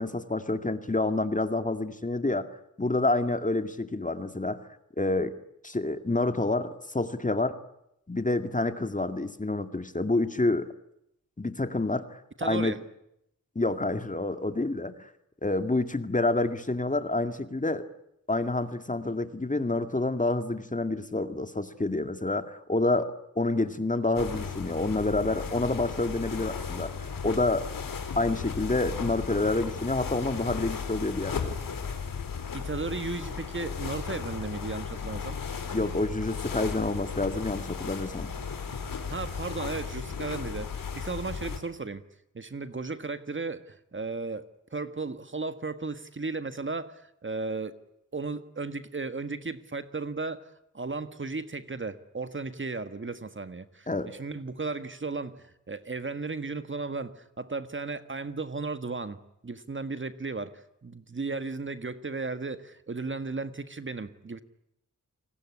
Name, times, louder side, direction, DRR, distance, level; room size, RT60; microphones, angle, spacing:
voice 1, 0.0-2.5 2.8-4.6 5.0-5.3 5.6-7.6 8.1-10.7 11.4-12.7 13.6-15.1 15.4-17.9 18.3-27.7 28.2-31.6 35.7-38.3 53.9-54.1, left 2 dB, 25° left, 9 dB, 2.1 m, -28 dB
voice 2, 12.4-12.8 32.5-35.4 38.9-42.0 42.3-44.4 44.7-47.8 48.1-64.4, right 3 dB, 35° right, 11 dB, 1.6 m, -35 dB
sound 1, 24.1-41.6, left 6 dB, 80° left, 3.8 m, -35 dB
29.0 x 19.5 x 9.8 m, 0.80 s
cardioid pair, 60°, 33 cm